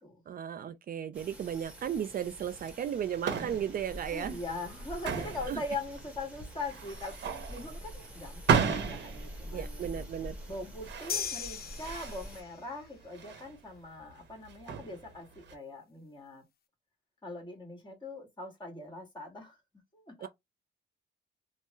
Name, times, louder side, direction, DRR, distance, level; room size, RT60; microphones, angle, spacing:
voice 1, 0.3-4.4 5.5-5.6 9.5-10.4 20.2-20.3, right 9 dB, 45° right, 0.4 m, -35 dB
sound 1, 1.1-12.4, equal, 5° right, 1.3 m, -46 dB
sound 2, 2.5-15.5, right 6 dB, 65° right, 0.9 m, -35 dB
voice 2, 4.1-7.2 7.5-9.9 10.5-16.4 17.2-19.6 19.9-20.3, left 2 dB, 20° left, 1.7 m, -41 dB
sound 3, 11.1-12.7, left 7 dB, 50° left, 0.7 m, -37 dB
3.3 x 2.1 x 3.0 m
cardioid pair, 90°, 20 cm